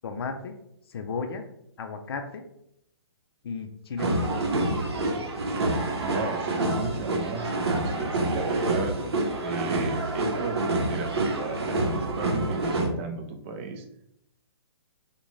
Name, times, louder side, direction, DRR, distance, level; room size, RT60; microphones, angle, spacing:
voice 1, 0.0-0.6 0.9-1.5 1.8-2.4 3.4-4.6, left 5 dB, 70° left, 6 dB, 0.4 m, -34 dB
sound 1, 4.0-12.9, right 2 dB, 80° right, 0.7 m, -27 dB
voice 2, 6.0-9.0 9.4-13.8, right 4 dB, 30° right, 4 dB, 0.4 m, -35 dB
2.5 x 2.1 x 3.0 m, 0.77 s
hypercardioid pair, 150°, 14 cm